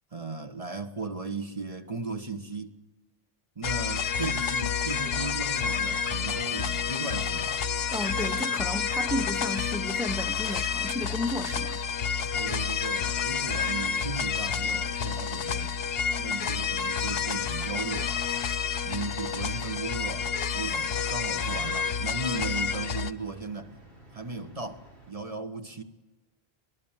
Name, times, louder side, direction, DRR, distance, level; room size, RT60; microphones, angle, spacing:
voice 1, 0.1-2.7 3.5-7.5 12.3-15.8 16.2-18.1 18.8-23.7 24.1-25.8, right 3 dB, 35° right, 1.6 m, -36 dB
sound 1, 3.6-23.1, left 6 dB, 65° left, 1.1 m, -29 dB
sound 2, 5.8-25.1, right 1 dB, 75° right, 6.8 m, -53 dB
voice 2, 7.8-11.8, left 1 dB, 5° right, 0.5 m, -33 dB
25.5 x 20.0 x 7.5 m
omnidirectional pair, 1.1 m